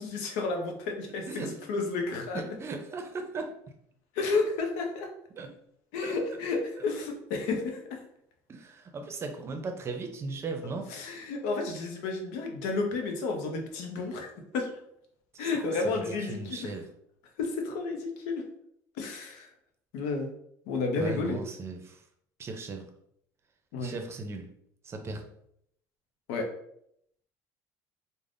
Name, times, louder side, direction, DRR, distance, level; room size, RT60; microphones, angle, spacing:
voice 1, 0.0-2.5 4.1-5.1 5.9-8.0 10.9-14.7 15.4-16.7 17.4-18.4 19.0-19.5 19.9-20.3 20.7-21.4 23.7-23.9 26.3-26.5, left 3 dB, 85° left, 3 dB, 0.6 m, -31 dB
voice 2, 2.3-3.5 5.4-5.5 6.0-6.1 8.5-10.9 15.3-16.8 21.0-22.0 22.4-22.9 23.8-24.5 24.8-25.2, right 3 dB, 35° right, 5 dB, 0.5 m, -37 dB
3.3 x 2.1 x 2.5 m, 0.72 s
supercardioid pair, 95°, 8 cm